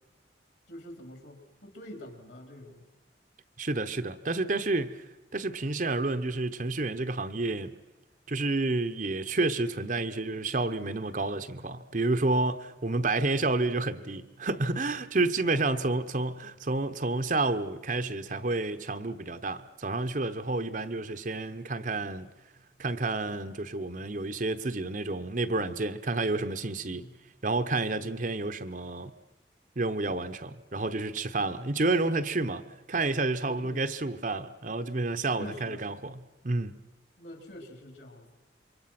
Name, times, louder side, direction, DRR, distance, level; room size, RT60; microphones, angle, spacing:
voice 1, 0.7-2.8 13.2-13.5 15.4-15.9 26.7-27.1 27.9-28.1 33.5-33.9 35.4-35.8 37.2-38.3, equal, 60° left, 4.4 m, -45 dB
voice 2, 3.6-5.0 5.3-7.7 8.3-22.3 22.8-27.0 27.4-29.1 29.8-36.2 36.4-36.8, right 2 dB, 40° right, 0.9 m, -30 dB
28.0 x 24.0 x 5.9 m
head